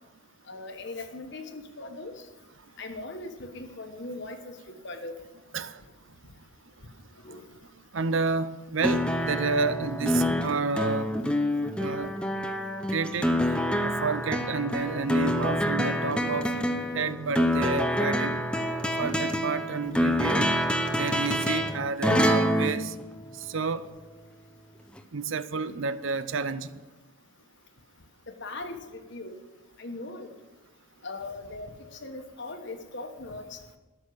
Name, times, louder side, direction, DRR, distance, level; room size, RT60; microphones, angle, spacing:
voice 1, 0.5-2.2 2.8-5.2 7.2-7.5 19.9-20.0 25.7-25.8 28.3-29.4 29.8-30.3 31.0-33.6, left 2 dB, 55° left, 7 dB, 1.3 m, -39 dB
voice 2, 7.9-11.1 11.8-12.1 12.9-13.3 13.8-16.5 16.9-18.4 19.0-20.5 20.9-22.9 23.4-23.9 25.1-26.8, right 4 dB, 60° right, 14 dB, 0.6 m, -30 dB
sound 1, 8.8-23.7 25.0-25.1, equal, 5° left, 0.7 m, -27 dB
13.0 x 6.4 x 9.3 m, 1.2 s
head